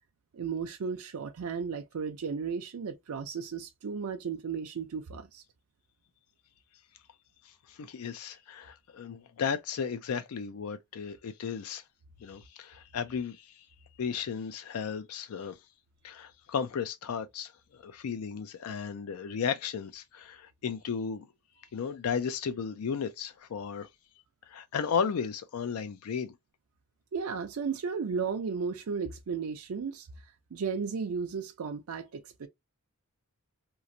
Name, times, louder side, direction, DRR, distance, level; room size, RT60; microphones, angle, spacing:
voice 1, 0.3-5.4 27.1-30.1 30.5-32.5, right 5 dB, 75° right, 0.5 m, -34 dB
voice 2, 7.4-11.8 12.2-13.7 14.0-15.6 16.0-21.3 21.7-23.9 24.5-26.3, left 6 dB, 75° left, 0.4 m, -34 dB
3.0 x 2.4 x 2.5 m
head